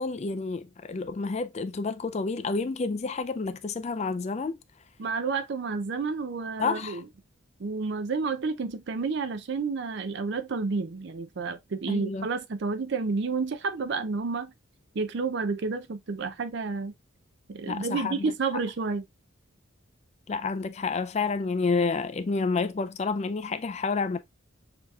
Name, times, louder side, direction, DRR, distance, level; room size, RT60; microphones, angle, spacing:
voice 1, 0.0-4.6 6.6-7.0 11.9-12.3 17.7-18.3 20.3-24.2, left 4 dB, 30° left, 0.3 m, -29 dB
voice 2, 5.0-7.0 7.6-14.5 14.9-16.9 17.5-19.0, right 4 dB, 55° right, 0.5 m, -30 dB
6.7 x 2.9 x 2.3 m
head